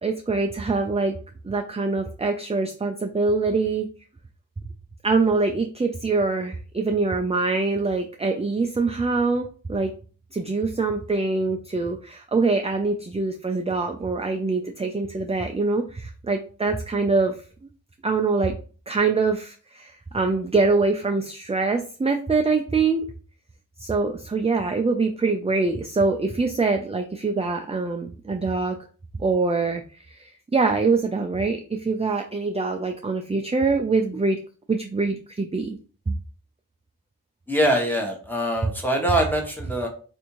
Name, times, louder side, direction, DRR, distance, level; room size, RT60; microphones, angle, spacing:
voice 1, 0.0-1.1 1.4-3.9 5.0-9.9 10.3-17.3 18.0-18.5 18.9-23.1 23.8-28.8 29.2-29.8 30.2-34.4 34.7-35.8 36.1-36.2 38.6-38.7, right 3 dB, 20° right, 5 dB, 0.3 m, -24 dB
voice 2, 37.5-39.9, right 1 dB, 5° left, 0 dB, 1.1 m, -23 dB
3.5 x 2.6 x 2.9 m, 0.39 s
wide cardioid pair, 45°, 36 cm